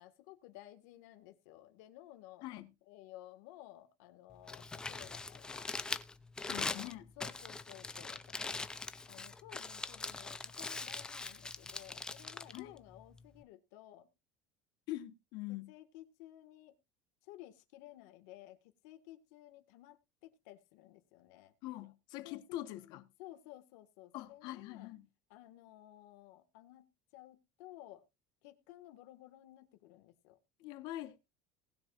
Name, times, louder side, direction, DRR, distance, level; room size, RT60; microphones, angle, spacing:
voice 1, 0.0-2.4 2.9-5.8 6.4-8.7 9.1-14.1 15.7-16.7 17.3-18.6 18.8-20.0 20.2-21.5 22.2-22.6 23.2-24.9 25.3-26.9 27.1-28.0 28.4-30.4, left 15 dB, 75° left, 1.8 m, -55 dB
voice 2, 2.4-2.7 6.5-7.1 12.5-12.7 14.9-15.7 21.6-23.1 24.1-25.1 30.6-31.2, left 15 dB, 50° left, 1.2 m, -44 dB
Crumpling crinkling, 4.3-13.4, left 3 dB, 10° left, 0.5 m, -42 dB
19.5 x 7.1 x 2.5 m
cardioid pair, 180°, 9 cm